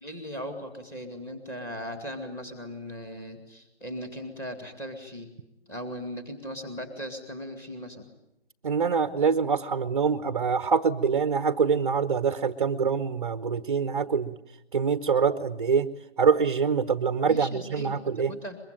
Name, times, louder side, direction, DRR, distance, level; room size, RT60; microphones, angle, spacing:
voice 1, 0.0-5.3 5.7-8.1 17.2-18.6, equal, 10° left, 6 dB, 2.3 m, -38 dB
voice 2, 8.6-14.3 14.7-15.9 16.2-18.3, right 6 dB, 35° right, 12 dB, 1.0 m, -25 dB
23.5 x 22.5 x 9.2 m, 0.83 s
figure-of-eight pair, 155°, 32 cm